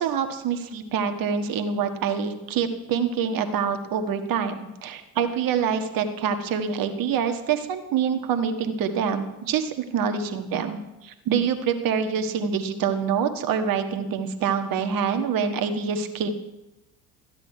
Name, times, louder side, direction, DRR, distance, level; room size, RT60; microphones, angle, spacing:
voice 1, 0.0-16.3, right 7 dB, 50° right, 7 dB, 1.6 m, -26 dB
13.5 x 9.8 x 4.6 m, 0.95 s
hypercardioid pair, 65°, 44 cm